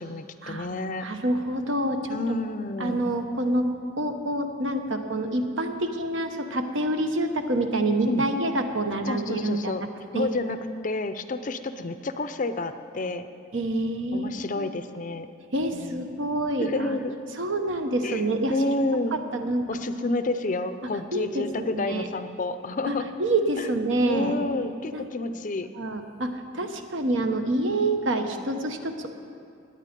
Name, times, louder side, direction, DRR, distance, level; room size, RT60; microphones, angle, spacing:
voice 1, 0.0-1.1 2.1-3.1 8.1-8.2 9.1-9.8 10.1-10.6 10.8-13.3 14.1-15.3 15.7-16.1 16.6-17.2 18.0-19.2 19.7-23.1 23.6-23.7 24.1-25.7 26.5-26.7, left 2 dB, 40° left, 10 dB, 0.5 m, -30 dB
voice 2, 1.0-2.2 2.8-3.7 4.0-9.9 10.1-10.3 13.5-14.7 15.5-16.9 17.4-18.5 19.1-19.7 21.1-22.1 22.9-23.0 23.2-24.3 24.9-25.1 25.8-26.3 26.5-29.1, right 1 dB, 65° right, 6 dB, 1.0 m, -27 dB
18.0 x 9.8 x 5.2 m, 2.4 s
head